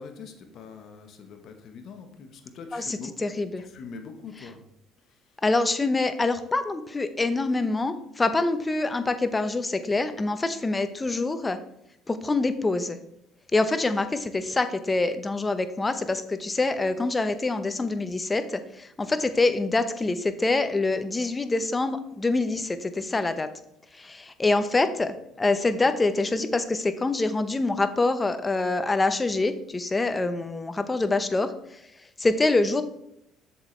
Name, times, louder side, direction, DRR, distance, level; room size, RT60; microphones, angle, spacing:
voice 1, 0.0-3.1 3.7-4.6, left 5 dB, 60° left, 6 dB, 1.3 m, -43 dB
voice 2, 2.7-3.6 5.4-11.6 12.1-13.0 13.5-23.5 23.9-31.8 32.2-32.8, left 3 dB, 20° left, 10 dB, 0.9 m, -25 dB
7.2 x 7.2 x 3.3 m, 0.78 s
hypercardioid pair, 70°, 0 cm